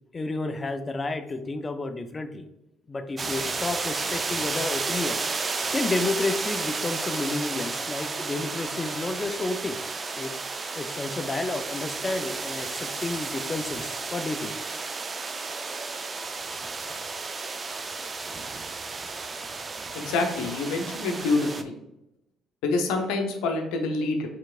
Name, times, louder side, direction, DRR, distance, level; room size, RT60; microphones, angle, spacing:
voice 1, 0.1-2.4 2.9-5.2 5.7-9.8 10.2-10.3 10.7-14.5, left 3 dB, 30° left, 9 dB, 0.5 m, -31 dB
sound 1, 3.2-21.6, right 4 dB, 35° right, 0.4 m, -32 dB
voice 2, 19.9-21.7 22.6-24.3, left 3 dB, 75° left, 4 dB, 0.7 m, -26 dB
4.6 x 3.6 x 2.4 m, 0.90 s
hypercardioid pair, 55°, 0 cm